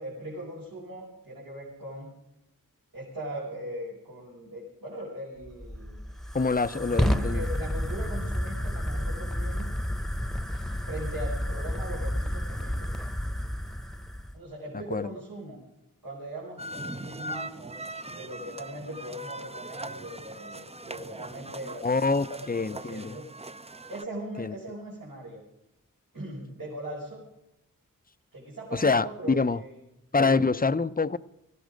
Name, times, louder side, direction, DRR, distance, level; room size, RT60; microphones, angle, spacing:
voice 1, 0.0-2.1 2.9-6.0 6.7-9.7 10.8-12.9 14.3-15.6 16.0-17.5 18.0-23.3 23.9-25.4 26.1-27.2 28.3-29.7 30.2-30.4, right 1 dB, 90° right, 5.2 m, -40 dB
Fire, 5.4-14.4, equal, ahead, 1.0 m, -31 dB
voice 2, 6.3-7.5 14.9-15.1 21.8-23.2 24.4-24.5 28.7-29.6 30.1-31.2, left 4 dB, 25° left, 0.6 m, -25 dB
sound 1, 16.6-24.1, right 2 dB, 20° right, 0.6 m, -41 dB
18.5 x 15.0 x 5.1 m
wide cardioid pair, 60°, 34 cm